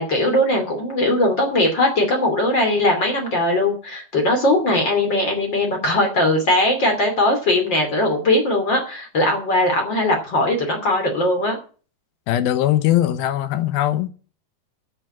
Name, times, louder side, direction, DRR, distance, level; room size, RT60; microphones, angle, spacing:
voice 1, 0.0-11.6, left 1 dB, 30° left, 2.9 m, -20 dB
voice 2, 12.3-14.1, left 13 dB, 75° left, 2.6 m, -20 dB
9.3 x 7.9 x 8.6 m
omnidirectional pair, 4.6 m